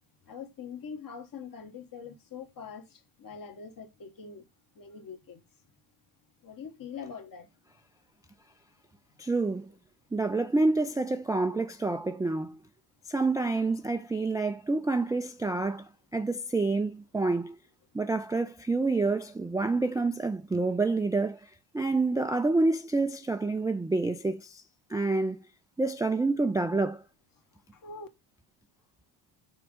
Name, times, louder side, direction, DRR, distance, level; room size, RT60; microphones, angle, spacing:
voice 1, 0.3-4.5 4.7-5.4 6.4-7.5 27.7-28.1, left 6 dB, 40° left, 1.4 m, -43 dB
voice 2, 9.2-9.7 10.1-12.6 13.1-15.8 16.1-17.6 17.9-21.4 21.7-24.6 24.9-25.4 25.8-27.0, right 3 dB, 10° right, 0.3 m, -28 dB
6.1 x 3.6 x 5.1 m
cardioid pair, 105°, 49 cm